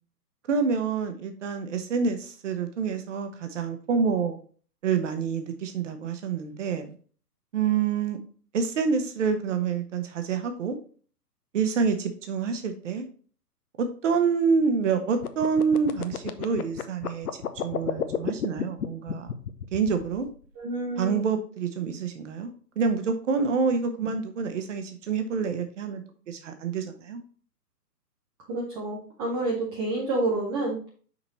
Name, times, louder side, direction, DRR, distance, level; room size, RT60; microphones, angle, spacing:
voice 1, 0.5-4.4 4.8-6.9 7.5-8.2 8.5-10.8 11.5-13.0 13.8-17.3 17.5-19.3 19.7-20.3 21.0-22.5 22.8-27.2, right 5 dB, 50° right, 7 dB, 1.2 m, -27 dB
sound 1, 15.2-20.4, left 8 dB, 65° left, 0.8 m, -31 dB
voice 2, 20.6-21.2 28.5-30.8, right 2 dB, 15° right, -3 dB, 0.8 m, -29 dB
5.9 x 4.2 x 4.1 m, 0.42 s
figure-of-eight pair, 130°, 48 cm